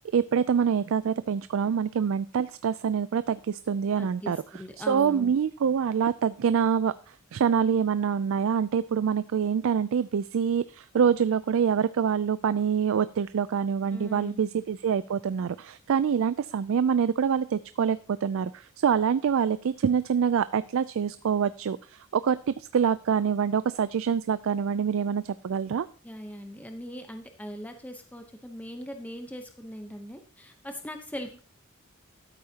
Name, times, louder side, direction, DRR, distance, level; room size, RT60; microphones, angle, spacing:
voice 1, 0.1-25.9, right 7 dB, 65° right, 15 dB, 0.4 m, -26 dB
voice 2, 4.0-5.3 13.9-14.5 26.0-31.4, equal, 5° left, 5 dB, 0.8 m, -40 dB
13.0 x 8.6 x 2.8 m, 0.40 s
head